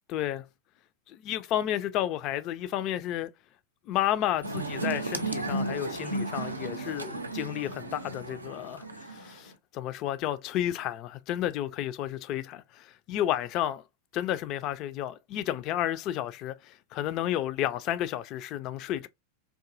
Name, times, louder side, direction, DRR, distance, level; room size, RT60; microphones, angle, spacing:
voice 1, 0.1-0.4 1.1-3.3 3.9-13.8 14.1-19.1, left 12 dB, 40° left, 0.4 m, -31 dB
sound 1, 4.4-9.5, right 2 dB, 85° right, 0.5 m, -34 dB
3.6 x 2.6 x 2.5 m
figure-of-eight pair, 90°, 0 cm